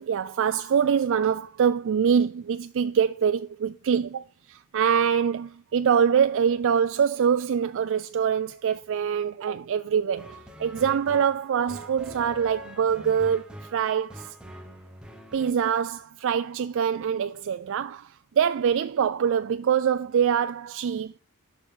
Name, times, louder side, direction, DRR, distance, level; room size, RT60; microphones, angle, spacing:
voice 1, 0.0-13.4 13.7-14.3 15.3-18.1 18.4-21.1, right 7 dB, 60° right, 0.3 m, -24 dB
sound 1, 10.1-15.5, equal, 5° right, 1.1 m, -44 dB
11.0 x 6.2 x 3.7 m
head